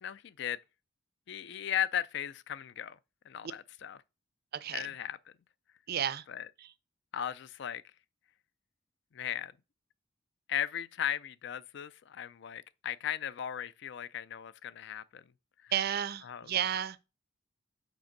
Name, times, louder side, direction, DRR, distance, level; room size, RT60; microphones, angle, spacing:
voice 1, 0.0-0.6 1.3-3.0 3.3-4.0 4.7-5.2 6.3-6.5 7.1-7.8 9.1-9.5 10.5-15.2 15.6-15.7 16.2-16.5, left 9 dB, 60° left, 0.4 m, -37 dB
voice 2, 4.5-4.8 5.9-6.2 15.7-17.0, right 9 dB, 55° right, 0.5 m, -32 dB
5.2 x 4.3 x 5.2 m
head